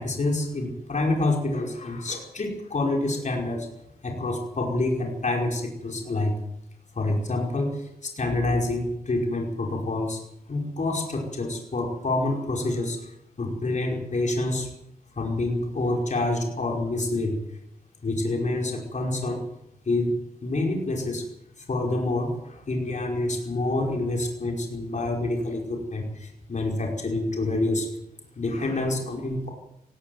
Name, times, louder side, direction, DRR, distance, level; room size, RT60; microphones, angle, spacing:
voice 1, 0.0-3.7 4.0-6.3 6.9-10.2 10.5-14.7 15.1-17.4 18.0-19.4 19.8-20.2 20.4-21.2 21.6-27.9 28.4-29.5, left 2 dB, 50° left, 0 dB, 5.2 m, -27 dB
18.0 x 18.0 x 8.0 m, 0.78 s
wide cardioid pair, 95°, 16 cm